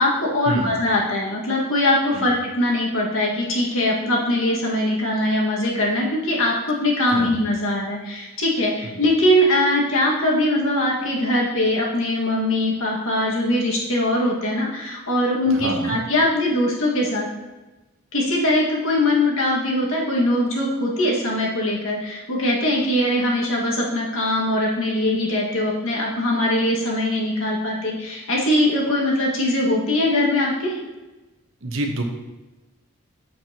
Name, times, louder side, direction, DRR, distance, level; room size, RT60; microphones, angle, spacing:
voice 1, 0.0-17.3 18.1-30.8, left 1 dB, 70° left, -3 dB, 1.8 m, -21 dB
voice 2, 15.5-16.0 31.6-32.0, right 1 dB, 65° right, 3 dB, 1.0 m, -28 dB
7.6 x 7.3 x 2.9 m, 1.1 s
head